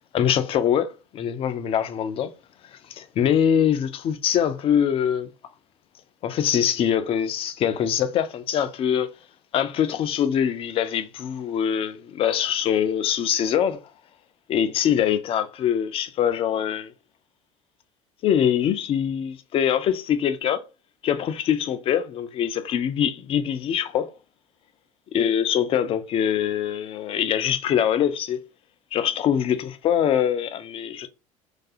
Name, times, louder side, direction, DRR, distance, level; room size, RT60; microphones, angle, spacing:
voice 1, 0.1-2.3 2.7-5.3 6.2-9.1 9.5-13.8 14.5-16.9 18.2-20.6 21.0-24.1 25.1-28.4 28.9-31.1, left 9 dB, 30° left, 0.3 m, -23 dB
2.4 x 2.3 x 2.5 m
figure-of-eight pair, 65°, 18 cm